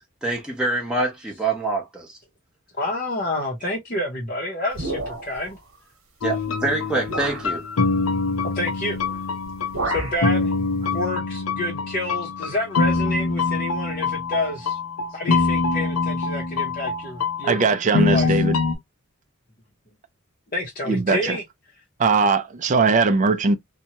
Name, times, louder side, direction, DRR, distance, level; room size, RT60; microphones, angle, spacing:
voice 1, 0.2-2.1 6.2-7.6, right 2 dB, 5° right, 0.7 m, -25 dB
voice 2, 2.8-5.6 8.4-9.0 9.8-10.5 10.9-14.8 15.1-17.6 18.0-18.4 20.5-21.4, left 1 dB, 40° left, 0.7 m, -28 dB
sound 1, 4.7-5.5 6.4-6.5 7.1-7.5 8.9-9.2 9.4-10.2, right 2 dB, 70° right, 1.0 m, -30 dB
sound 2, 6.2-18.7, left 4 dB, 80° left, 0.6 m, -24 dB
voice 3, 17.5-18.6 20.9-21.4 22.0-23.6, right 4 dB, 35° right, 0.4 m, -20 dB
2.8 x 2.2 x 2.8 m
head